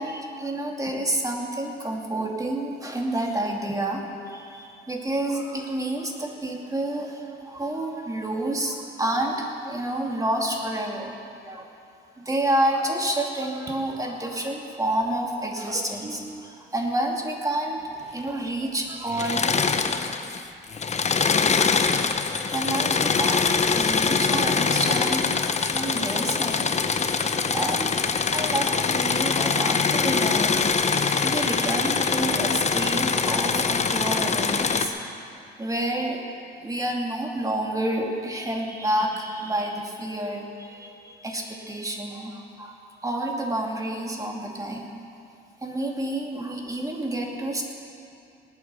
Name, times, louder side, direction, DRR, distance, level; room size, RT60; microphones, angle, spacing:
voice 1, 0.0-11.2 11.4-11.7 12.2-17.8 18.1-19.5 22.5-25.3 25.6-26.7 27.5-28.0 28.3-35.1 35.6-36.2 36.6-42.8 43.0-44.9 45.6-47.6, right 1 dB, 15° right, 0 dB, 2.5 m, -29 dB
Engine / Mechanisms, 19.1-20.4 20.7-34.9, left 5 dB, 35° left, 0.9 m, -23 dB
19.5 x 8.8 x 6.9 m, 2.6 s
cardioid pair, 90°, 20 cm